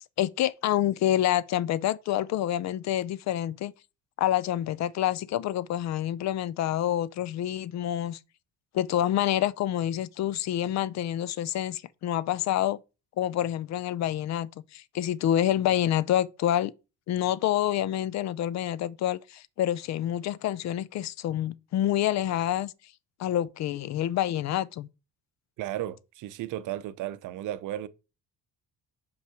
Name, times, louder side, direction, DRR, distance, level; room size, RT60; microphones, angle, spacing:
voice 1, 0.2-3.7 4.2-8.2 8.7-12.8 13.2-16.7 17.1-22.7 23.2-24.9, left 12 dB, 55° left, 0.5 m, -27 dB
voice 2, 25.6-27.9, right 13 dB, 70° right, 0.7 m, -34 dB
5.5 x 4.7 x 6.3 m
cardioid pair, 145°, 32 cm